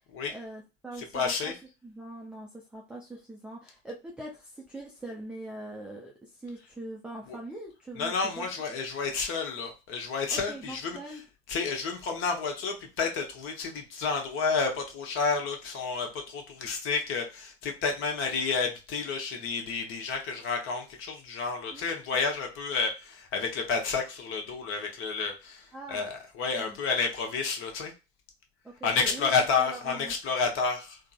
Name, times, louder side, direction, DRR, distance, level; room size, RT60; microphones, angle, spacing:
voice 1, 0.3-1.6 1.8-8.5 10.3-11.2 21.7-22.2 25.7-26.1 26.6-26.8 28.6-29.3 29.6-30.1, right 2 dB, 5° right, -2 dB, 0.4 m, -42 dB
voice 2, 1.1-1.5 7.3-7.4 8.0-11.0 11.5-27.9 28.8-31.0, left 5 dB, 40° left, 3 dB, 0.9 m, -30 dB
3.5 x 2.0 x 2.3 m, 0.28 s
figure-of-eight pair, 80°, 32 cm